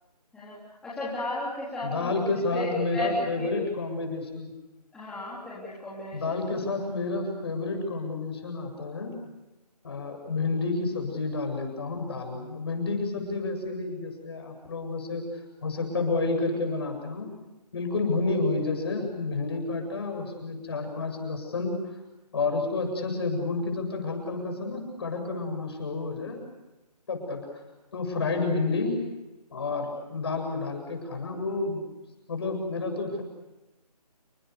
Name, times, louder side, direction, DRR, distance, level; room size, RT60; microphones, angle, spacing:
voice 1, 0.8-2.1 2.5-3.5 4.9-6.4, left 2 dB, 5° left, -10 dB, 3.8 m, -34 dB
voice 2, 1.8-4.5 6.1-9.1 9.8-15.2 15.6-17.3 17.7-21.8 22.3-26.4 27.1-27.4 27.9-29.0 29.5-31.8 32.3-33.2, left 3 dB, 40° left, 4 dB, 7.9 m, -30 dB
29.5 x 26.5 x 6.8 m, 1.0 s
figure-of-eight pair, 165°, 21 cm